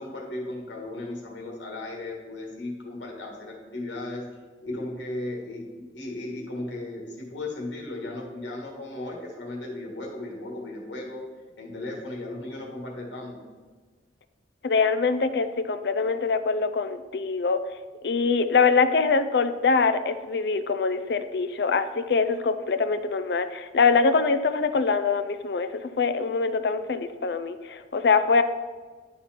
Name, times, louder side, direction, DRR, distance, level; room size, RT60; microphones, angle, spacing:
voice 1, 0.0-4.3 4.6-11.2 11.6-13.5, left 2 dB, 85° left, -1 dB, 1.7 m, -36 dB
voice 2, 14.6-17.6 18.0-28.4, left 4 dB, 60° left, 11 dB, 0.4 m, -24 dB
10.5 x 4.1 x 4.4 m, 1.4 s
head